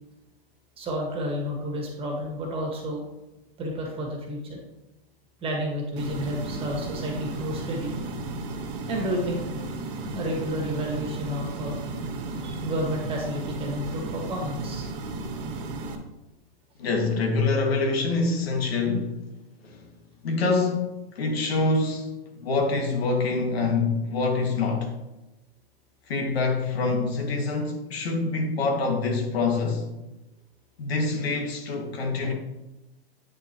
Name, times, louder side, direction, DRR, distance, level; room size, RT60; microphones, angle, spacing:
voice 1, 0.8-3.1 3.6-4.6 5.4-8.0 8.9-9.5 10.1-11.8 12.4-14.9, equal, 20° right, 1.8 m, -31 dB
sound 1, 6.0-16.0, right 3 dB, 55° right, 1.4 m, -34 dB
voice 2, 16.8-19.2 19.6-19.8 20.2-25.0 26.1-29.9 30.8-32.3, left 3 dB, 75° left, 2.2 m, -25 dB
9.0 x 7.1 x 3.1 m
hypercardioid pair, 140°, 31 cm